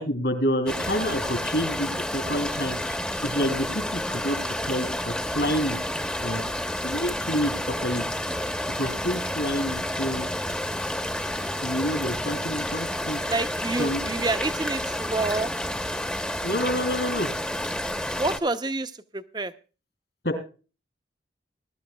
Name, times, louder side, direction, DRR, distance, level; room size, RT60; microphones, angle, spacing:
voice 1, 0.0-3.7 3.9-4.4 4.7-5.8 6.2-6.4 6.8-7.6 7.8-8.0 8.8-10.3 11.6-13.2 13.8-14.0 16.4-17.3 20.2-20.4, equal, 70° left, 3.0 m, -28 dB
sound 1, 0.7-18.4, left 1 dB, 5° left, 0.8 m, -30 dB
voice 2, 13.3-15.5 18.1-19.5, right 3 dB, 25° right, 0.6 m, -28 dB
21.5 x 12.5 x 2.3 m
head